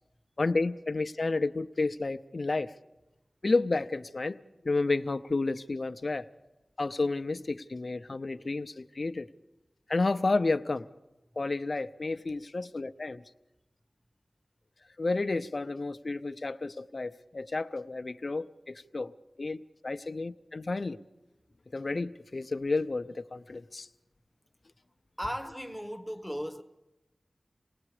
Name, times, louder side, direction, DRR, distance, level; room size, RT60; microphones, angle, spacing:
voice 1, 0.4-2.7 3.4-4.4 4.6-6.3 6.8-9.3 9.9-10.9 11.4-13.2 15.0-21.0 21.7-23.9, left 3 dB, 55° left, 0.6 m, -31 dB
voice 2, 25.2-26.6, equal, 5° right, 1.0 m, -36 dB
27.5 x 19.0 x 4.9 m
wide cardioid pair, 65°, 0 cm